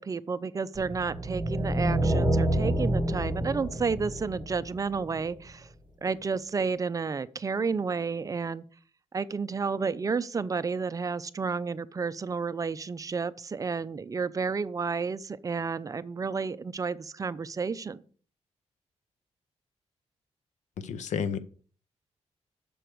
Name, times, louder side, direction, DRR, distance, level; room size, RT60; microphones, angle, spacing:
voice 1, 0.0-5.7 6.0-8.6 9.1-18.0, right 5 dB, 30° right, 0.4 m, -31 dB
sound 1, 0.7-5.2, right 1 dB, 15° right, 2.0 m, -28 dB
voice 2, 20.8-21.4, left 6 dB, 85° left, 0.7 m, -31 dB
7.0 x 4.5 x 6.5 m
wide cardioid pair, 125°, 12 cm